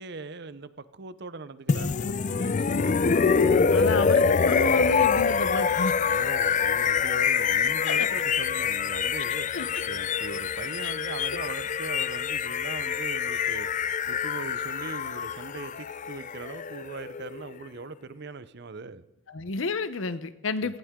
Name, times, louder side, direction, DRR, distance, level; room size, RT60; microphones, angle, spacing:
voice 1, 0.0-3.3 6.1-13.7 14.1-19.0 20.6-20.7, right 4 dB, 60° right, 14 dB, 0.7 m, -40 dB
sound 1, 1.7-17.6, left 6 dB, 40° left, 0.4 m, -25 dB
voice 2, 3.7-5.9 7.8-8.1 9.3-9.8 10.8-10.9 19.3-20.8, left 3 dB, 90° left, 13 dB, 0.8 m, -30 dB
18.0 x 14.5 x 3.7 m, 1.0 s
head